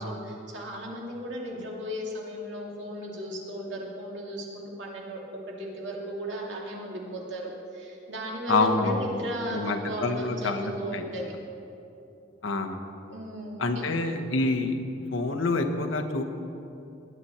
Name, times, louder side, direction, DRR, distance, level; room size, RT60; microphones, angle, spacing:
voice 1, 0.0-5.2 5.5-11.3 13.1-13.8, equal, 70° right, -2 dB, 2.5 m, -35 dB
voice 2, 8.5-9.2 9.5-11.0 12.4-12.8 13.6-14.8 15.1-16.2, left 2 dB, 85° left, 4 dB, 1.1 m, -27 dB
20.0 x 9.8 x 4.3 m, 2.8 s
head